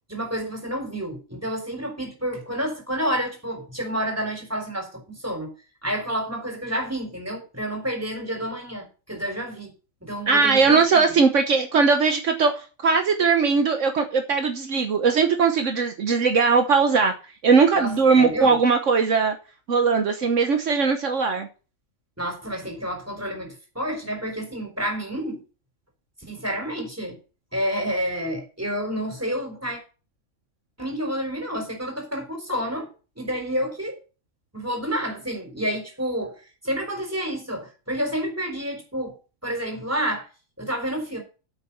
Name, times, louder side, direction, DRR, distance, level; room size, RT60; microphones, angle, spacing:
voice 1, 0.1-5.5 5.8-9.7 10.0-11.0 17.7-18.6 22.2-25.4 26.2-27.2 27.5-29.8 30.8-32.9 33.2-34.0 34.5-39.2 39.4-40.3 40.6-41.2, equal, 10° right, 3.9 m, -29 dB
voice 2, 10.3-17.1 17.4-19.3 19.7-21.5, right 5 dB, 65° right, 1.4 m, -20 dB
8.7 x 8.1 x 5.8 m
omnidirectional pair, 1.4 m